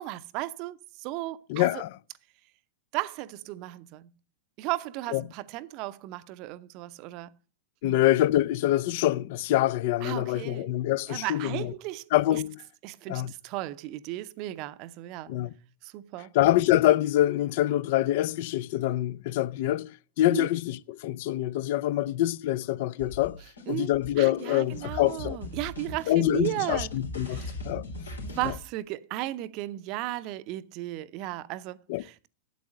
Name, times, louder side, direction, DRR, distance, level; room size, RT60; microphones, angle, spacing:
voice 1, 0.0-1.8 2.9-4.1 4.6-7.4 7.8-8.0 10.0-10.7 11.1-12.4 12.8-15.3 15.8-16.3 20.3-20.5 23.7-23.9 24.2-26.9 27.3-27.6 28.2-32.3, right 16 dB, 45° right, 0.7 m, -35 dB
voice 2, 1.5-1.9 5.1-5.2 7.8-11.7 12.1-12.6 13.1-13.3 15.3-15.5 16.3-19.9 20.2-23.4 23.7-25.4 26.1-27.8 31.9-32.0, left 14 dB, 55° left, 0.6 m, -25 dB
sound 1, 23.0-28.5, left 1 dB, 85° left, 3.5 m, -39 dB
8.4 x 8.3 x 7.5 m
figure-of-eight pair, 100°, 0 cm